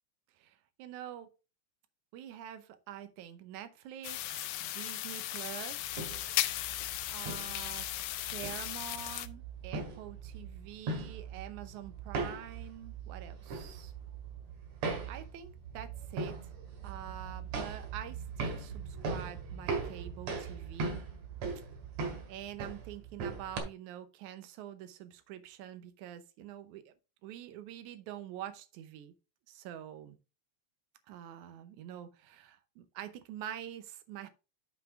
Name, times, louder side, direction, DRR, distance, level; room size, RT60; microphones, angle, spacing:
voice 1, 0.3-1.3 2.1-6.3 7.1-7.9 8.3-13.9 15.1-16.5 16.8-21.0 22.3-26.9 27.2-29.1 29.5-30.2 31.1-34.3, right 11 dB, 85° right, 2.2 m, -46 dB
sound 1, 4.0-9.3, left 14 dB, 85° left, 1.3 m, -36 dB
sound 2, 5.8-23.6, right 4 dB, 70° right, 3.1 m, -40 dB
7.5 x 5.7 x 3.5 m
omnidirectional pair, 3.4 m